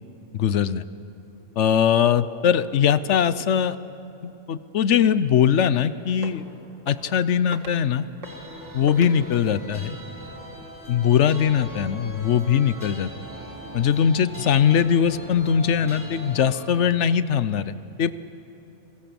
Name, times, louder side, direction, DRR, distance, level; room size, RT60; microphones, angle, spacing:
voice 1, 0.3-0.8 1.6-3.8 4.2-6.4 6.9-8.1 8.7-10.0 10.9-13.1 13.7-18.1, left 8 dB, 70° left, 15 dB, 1.0 m, -21 dB
sound 1, 5.6-5.9 6.1-6.5 6.9-7.2 7.5-7.8 8.2-8.5 8.9-9.2, right 3 dB, 85° right, 2.2 m, -41 dB
sound 2, 8.2-16.7, equal, 15° right, 3.4 m, -40 dB
28.0 x 22.0 x 7.0 m, 2.9 s
omnidirectional pair, 1.3 m